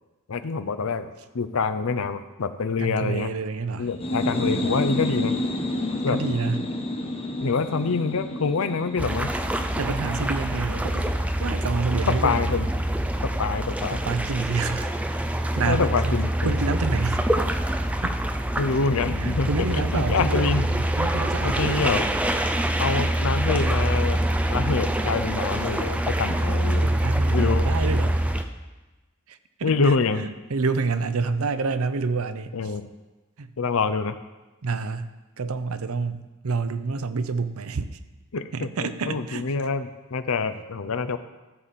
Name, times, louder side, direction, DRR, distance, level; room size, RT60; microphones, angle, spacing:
voice 1, 0.3-3.3 3.8-5.3 6.0-6.2 7.4-9.3 12.1-12.7 13.2-14.0 15.7-16.6 18.6-20.7 21.4-22.0 22.8-24.2 24.5-26.8 27.3-27.7 29.6-30.2 32.5-32.9 33.6-34.1 38.3-41.2, left 4 dB, 70° left, 10 dB, 0.6 m, -26 dB
voice 2, 2.8-3.9 6.1-6.7 9.8-11.1 11.4-12.6 13.9-14.9 15.5-16.2 16.4-17.3 18.0-18.2 19.2-22.0 26.8-28.2 29.3-29.9 30.2-32.5 33.4-33.5 34.6-37.9 38.5-39.4, right 4 dB, 75° right, 11 dB, 0.6 m, -28 dB
sound 1, 3.9-11.4, left 1 dB, 30° left, 1.0 m, -30 dB
sound 2, 9.0-28.4, right 1 dB, 5° right, 0.5 m, -25 dB
13.5 x 7.2 x 4.2 m, 1.1 s
head